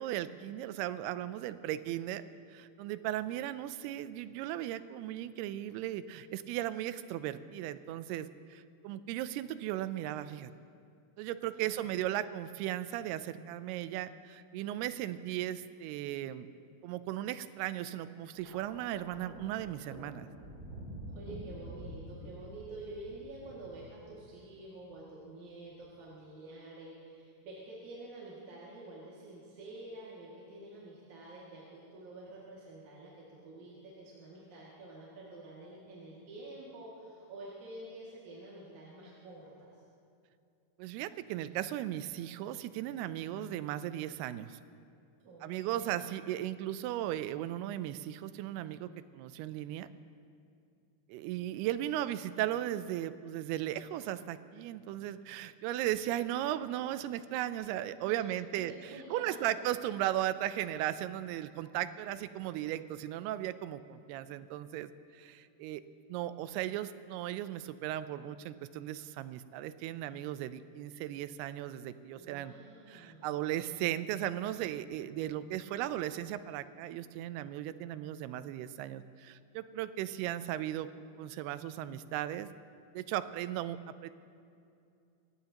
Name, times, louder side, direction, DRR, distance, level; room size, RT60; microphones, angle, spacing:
voice 1, 0.0-2.2 2.5-10.5 11.2-16.5 16.8-20.3 40.8-44.6 45.4-49.9 51.1-65.8 66.1-72.5 72.9-80.9 81.2-82.5 82.9-84.1, right 13 dB, 85° right, 13 dB, 2.5 m, -36 dB
voice 2, 11.5-11.9 21.1-39.7 45.2-46.0 58.0-58.2 58.9-59.6 72.2-73.4, right 2 dB, 50° right, -7 dB, 3.3 m, -48 dB
Thunder, 18.3-24.7 25.7-25.9, right 1 dB, 25° right, 3.2 m, -48 dB
sound 1, 21.8-22.3, left 4 dB, 70° left, 2.1 m, -52 dB
27.5 x 15.5 x 2.9 m, 2.5 s
omnidirectional pair, 4.7 m